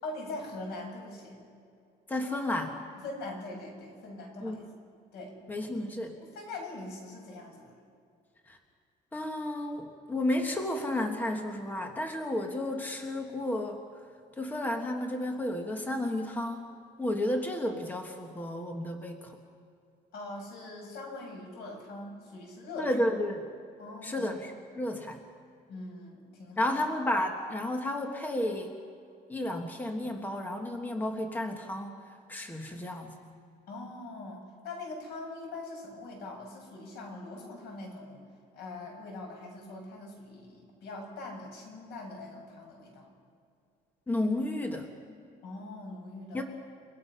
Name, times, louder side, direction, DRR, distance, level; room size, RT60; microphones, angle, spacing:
voice 1, 0.0-1.4 3.0-4.6 5.1-5.4 6.3-7.7 20.1-22.9 23.8-24.3 25.7-26.7 33.7-38.3 38.5-43.1 45.4-46.4, left 2 dB, 80° left, 1 dB, 6.8 m, -42 dB
voice 2, 2.1-2.8 4.4-4.6 5.5-6.2 8.5-8.6 9.1-13.8 14.4-16.6 17.0-19.4 22.8-23.5 24.0-25.2 26.6-28.7 29.3-32.0 32.3-33.2 44.1-44.9 46.3-46.4, left 1 dB, 10° left, 4 dB, 1.4 m, -32 dB
29.0 x 18.5 x 5.7 m, 2.4 s
cardioid pair, 160°, 17 cm